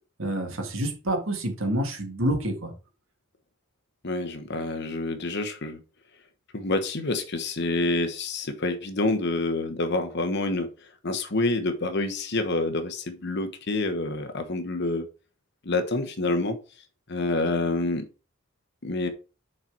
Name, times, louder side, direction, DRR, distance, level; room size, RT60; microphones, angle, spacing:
voice 1, 0.2-2.7, right 1 dB, 70° right, 1.9 m, -28 dB
voice 2, 4.0-5.8 6.5-10.7 11.0-15.1 15.6-16.6 17.1-18.1 18.8-19.1, left 2 dB, 55° left, 1.1 m, -27 dB
6.7 x 4.4 x 4.7 m
head